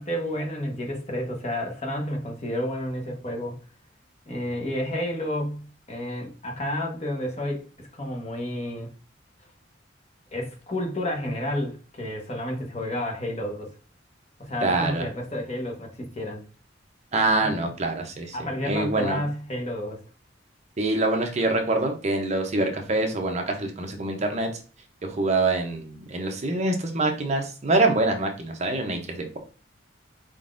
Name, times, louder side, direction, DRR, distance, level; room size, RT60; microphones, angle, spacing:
voice 1, 0.0-3.5 4.3-8.9 10.3-13.7 14.4-16.4 17.4-17.7 18.3-20.0, left 1 dB, 35° left, 1.0 m, -31 dB
voice 2, 14.6-15.0 17.1-18.3 18.7-19.2 20.8-24.5 25.0-29.4, right 2 dB, 35° right, 0.6 m, -25 dB
4.5 x 3.8 x 2.5 m
head